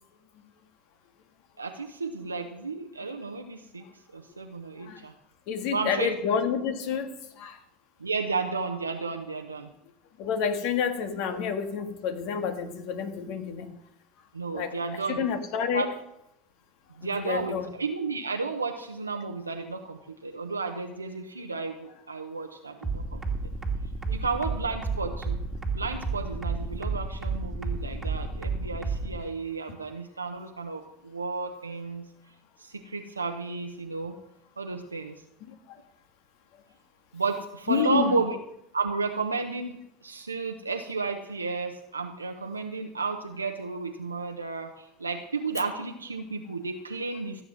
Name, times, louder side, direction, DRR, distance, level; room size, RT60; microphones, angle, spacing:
voice 1, 1.6-3.8 4.1-5.1 5.7-6.1 8.0-9.7 11.3-11.4 14.3-15.2 15.7-15.9 17.0-23.2 24.1-25.4 25.7-32.1 32.6-34.1 34.6-35.1 37.1-38.4 38.7-47.4, right 4 dB, 85° right, 4 dB, 0.8 m, -32 dB
voice 2, 5.5-7.6 10.2-13.7 14.5-14.7 15.1-15.8 17.0-17.7 24.1-24.2 35.7-35.8 37.7-38.1, left 7 dB, 55° left, 7 dB, 1.8 m, -29 dB
sound 1, 22.8-29.2, right 3 dB, 15° right, 1.9 m, -30 dB
14.5 x 7.5 x 6.3 m, 0.82 s
figure-of-eight pair, 75°, 0 cm